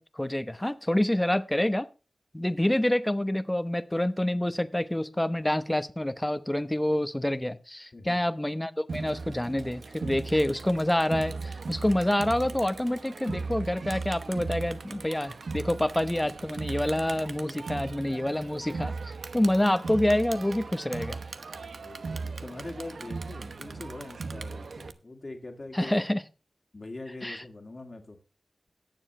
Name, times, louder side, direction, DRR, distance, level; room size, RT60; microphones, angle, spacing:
voice 1, 0.0-1.9 2.3-21.2 25.7-26.2 27.2-27.4, left 1 dB, 15° left, 14 dB, 0.9 m, -27 dB
Crowd, 8.9-24.9, right 4 dB, 75° right, 1.0 m, -38 dB
voice 2, 21.7-25.9 26.7-28.2, left 2 dB, 45° left, 2 dB, 2.1 m, -42 dB
18.0 x 7.2 x 3.2 m, 0.32 s
cardioid pair, 55°, 0 cm